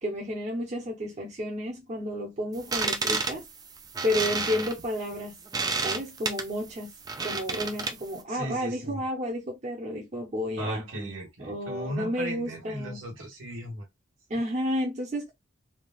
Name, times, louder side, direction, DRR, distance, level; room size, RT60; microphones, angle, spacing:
voice 1, 0.0-3.5 4.0-5.4 5.8-6.9 7.2-10.8 11.4-13.0 14.3-15.3, equal, 35° right, 0.8 m, -31 dB
sound 1, 2.6-8.2, right 4 dB, 20° right, 0.3 m, -31 dB
voice 2, 8.3-9.0 10.6-13.9, right 1 dB, 75° right, 1.3 m, -36 dB
3.4 x 2.3 x 2.3 m
head